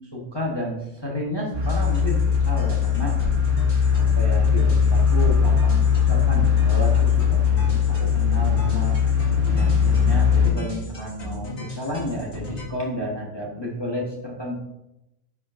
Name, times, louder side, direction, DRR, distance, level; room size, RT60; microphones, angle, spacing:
voice 1, 0.0-3.2 3.9-9.0 9.5-14.5, left 1 dB, 20° left, -3 dB, 1.0 m, -31 dB
sound 1, 1.5-10.5, left 7 dB, 55° right, 2.2 m, -20 dB
sound 2, 1.6-12.7, equal, 50° left, 2.1 m, -35 dB
10.5 x 4.9 x 2.5 m, 0.89 s
omnidirectional pair, 1.5 m